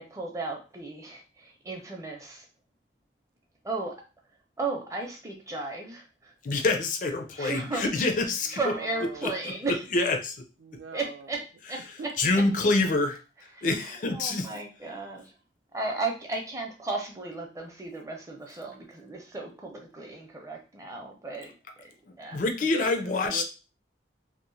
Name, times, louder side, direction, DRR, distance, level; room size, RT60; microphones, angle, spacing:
voice 1, 0.0-2.4 3.6-3.9 4.6-6.3 7.4-7.8 8.5-9.8 10.9-11.4 11.7-11.8 13.5-15.3 15.7-21.5 22.2-22.4, right 3 dB, 20° right, 1 dB, 0.5 m, -35 dB
voice 2, 6.4-8.7 9.2-9.3 9.9-10.4 12.2-13.2 13.6-14.6 22.3-23.4, left 3 dB, 45° left, 5 dB, 0.4 m, -26 dB
voice 3, 8.4-9.6 10.6-11.3 12.0-12.3 22.6-23.4, right 5 dB, 85° right, 8 dB, 0.4 m, -42 dB
2.8 x 2.0 x 2.6 m, 0.33 s
head